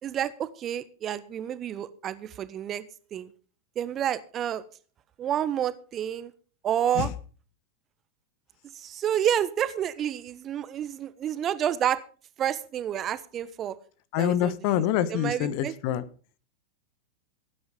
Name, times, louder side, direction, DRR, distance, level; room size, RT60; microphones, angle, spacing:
voice 1, 0.0-2.8 3.1-3.3 3.7-4.6 5.2-6.3 6.6-7.1 8.7-12.0 12.4-13.7 14.2-14.5 15.1-15.7, right 10 dB, 30° right, 14 dB, 1.2 m, -29 dB
voice 2, 14.1-16.1, left 11 dB, 45° left, 16 dB, 1.2 m, -26 dB
17.0 x 9.5 x 5.3 m, 0.40 s
figure-of-eight pair, 90°, 0 cm